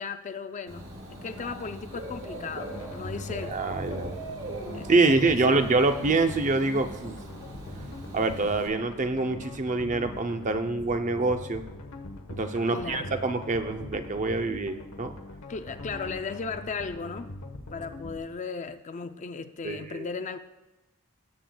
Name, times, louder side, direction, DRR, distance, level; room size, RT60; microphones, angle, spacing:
voice 1, 0.0-3.6 4.7-5.6 12.7-13.2 15.5-17.3 17.7-20.4, left 5 dB, 35° left, 9 dB, 0.4 m, -36 dB
Dog / Bird, 0.7-8.7, right 1 dB, 60° right, 2.8 m, -40 dB
sound 1, 2.7-18.2, left 1 dB, 65° left, 1.0 m, -42 dB
voice 2, 3.5-4.2 4.9-7.2 8.1-11.6 12.4-15.1 19.6-20.1, right 3 dB, 35° right, 8 dB, 0.6 m, -25 dB
18.5 x 7.7 x 2.3 m, 1.1 s
head